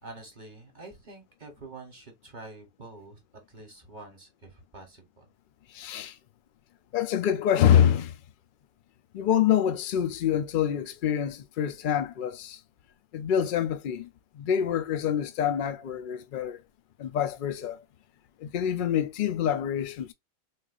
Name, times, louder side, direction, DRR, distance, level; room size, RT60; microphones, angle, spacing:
voice 1, 0.0-3.2 3.5-5.3, right 2 dB, 40° right, 1.1 m, -46 dB
voice 2, 5.7-6.2 6.9-8.2 9.1-12.6 13.1-14.1 14.3-16.6 17.0-17.8 18.4-20.1, left 9 dB, 65° left, 0.5 m, -26 dB
4.0 x 2.5 x 2.4 m
omnidirectional pair, 1.4 m